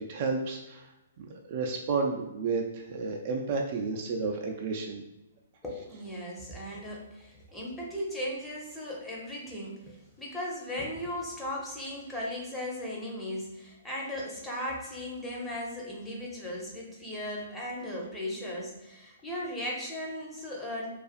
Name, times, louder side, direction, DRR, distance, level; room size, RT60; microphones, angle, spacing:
voice 1, 0.0-5.0, right 4 dB, 45° right, 2 dB, 0.3 m, -32 dB
voice 2, 5.6-20.9, left 1 dB, 5° left, -4 dB, 0.6 m, -37 dB
2.4 x 2.4 x 2.4 m, 0.98 s
figure-of-eight pair, 125°, 0 cm